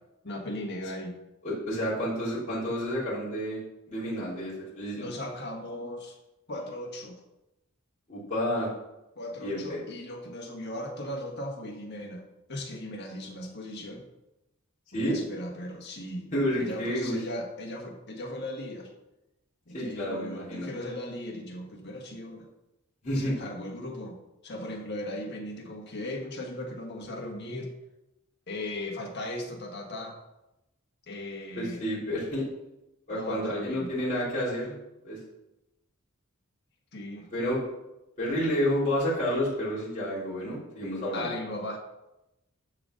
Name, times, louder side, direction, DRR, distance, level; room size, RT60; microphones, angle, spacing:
voice 1, 0.2-1.1 5.0-6.2 6.5-7.2 9.1-12.2 12.5-14.0 14.9-16.3 16.6-18.9 19.7-22.5 23.1-24.2 24.4-27.7 28.5-30.2 31.1-31.8 33.1-33.9 36.9-37.3 41.1-41.8, left 1 dB, 50° left, 1 dB, 1.7 m, -37 dB
voice 2, 1.4-3.6 3.9-5.1 8.1-8.7 9.4-9.8 14.9-15.2 16.3-17.2 19.7-20.7 23.0-23.4 31.6-32.4 33.1-34.7 35.0-35.2 37.3-37.6 38.2-41.3, equal, 35° left, -9 dB, 3.5 m, -30 dB
11.5 x 4.1 x 6.4 m, 0.93 s
head